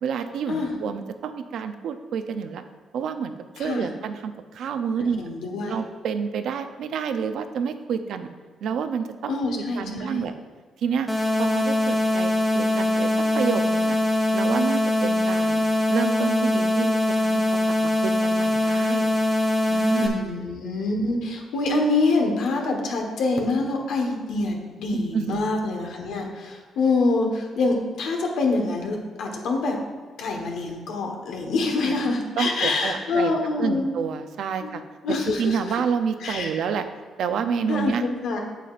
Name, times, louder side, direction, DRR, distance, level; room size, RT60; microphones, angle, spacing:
voice 1, 0.0-2.6 2.9-5.3 5.7-8.3 8.6-9.4 9.7-10.3 10.8-11.1 11.4-14.0 14.3-15.6 15.9-17.6 18.0-19.1 19.7-20.4 25.1-25.4 31.8-32.0 32.4-33.3 33.6-34.8 35.3-36.9 37.2-38.0, right 6 dB, 75° right, 9 dB, 0.5 m, -29 dB
voice 2, 3.6-3.9 5.2-5.8 9.3-10.3 20.0-29.8 30.2-33.9 34.6-34.7 35.0-35.7 36.2-36.5 37.7-38.4, left 3 dB, 85° left, 1 dB, 1.2 m, -25 dB
sound 1, 11.1-20.1, left 1 dB, 5° left, 1.1 m, -22 dB
8.2 x 7.6 x 2.5 m, 1.5 s
cardioid pair, 115°, 0 cm